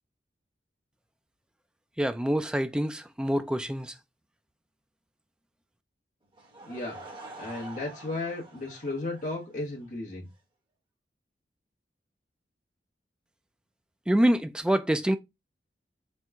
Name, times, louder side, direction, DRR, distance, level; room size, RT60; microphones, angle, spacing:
voice 1, 2.0-3.9 14.1-15.2, equal, 5° right, 0.3 m, -26 dB
Laughter / Crowd, 6.3-9.9, right 2 dB, 30° right, 1.1 m, -46 dB
voice 2, 6.6-7.0 7.4-10.3, left 2 dB, 45° left, 0.9 m, -34 dB
4.4 x 2.1 x 3.5 m
head